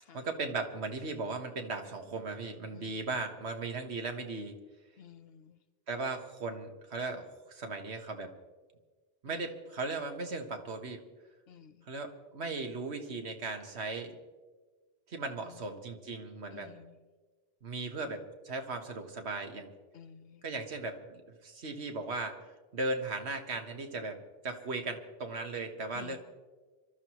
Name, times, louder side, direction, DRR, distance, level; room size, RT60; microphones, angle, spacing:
voice 1, 0.1-4.6 5.9-8.3 9.2-11.0 11.9-14.2 15.1-16.7 17.6-19.7 20.4-22.4 22.7-26.2, right 3 dB, 85° right, 5 dB, 1.6 m, -37 dB
voice 2, 2.7-3.1 5.0-5.6 9.3-9.5 11.5-11.9 15.4-15.6 16.5-17.0 19.9-20.4 25.9-26.2, left 8 dB, 70° left, 10 dB, 1.0 m, -53 dB
25.5 x 13.0 x 3.1 m, 1.3 s
omnidirectional pair, 1.1 m